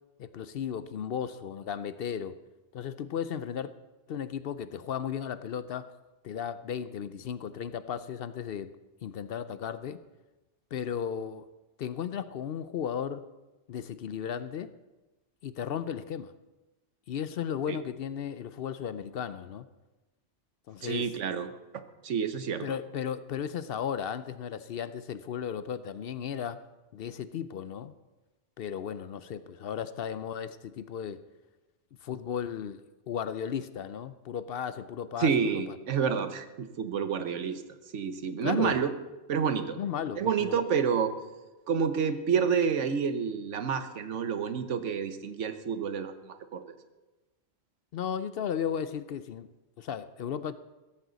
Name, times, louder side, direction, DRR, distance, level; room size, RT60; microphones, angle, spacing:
voice 1, 0.2-2.4 2.7-3.7 4.1-5.9 6.2-8.7 9.0-10.0 10.7-11.5 11.8-13.2 13.7-14.7 15.4-16.3 17.1-19.7 20.7-21.1 22.6-26.6 26.9-27.9 28.6-31.2 32.0-35.3 35.7-35.8 38.4-38.9 39.7-40.6 47.9-49.5 49.8-50.5, left 8 dB, 60° left, 13 dB, 0.7 m, -35 dB
voice 2, 20.8-21.5 22.0-22.7 35.2-37.6 37.9-38.9 39.3-39.8 40.2-41.1 41.7-46.6, right 6 dB, 90° right, 10 dB, 1.3 m, -29 dB
16.0 x 14.5 x 4.0 m, 1.1 s
omnidirectional pair, 1.2 m